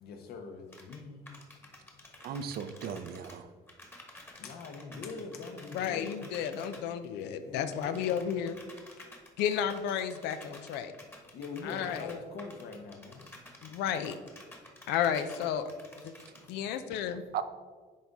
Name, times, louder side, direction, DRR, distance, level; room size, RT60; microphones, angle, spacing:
voice 1, 0.0-1.4 4.4-6.3 7.4-8.6 11.3-13.3, left 4 dB, 70° left, 5 dB, 1.1 m, -43 dB
sound 1, 0.7-1.0 1.3-3.4 3.7-6.8 7.7-16.5, left 1 dB, 15° left, 1.2 m, -52 dB
voice 2, 2.2-3.5 17.3-17.4, right 8 dB, 65° right, 11 dB, 0.6 m, -36 dB
voice 3, 5.7-8.6 9.4-10.9 11.6-12.1 13.6-14.2 14.9-15.7 16.0-16.1 16.5-17.2, left 8 dB, 90° left, 10 dB, 0.5 m, -32 dB
10.5 x 4.0 x 3.5 m, 1.5 s
cardioid pair, 110°, 17 cm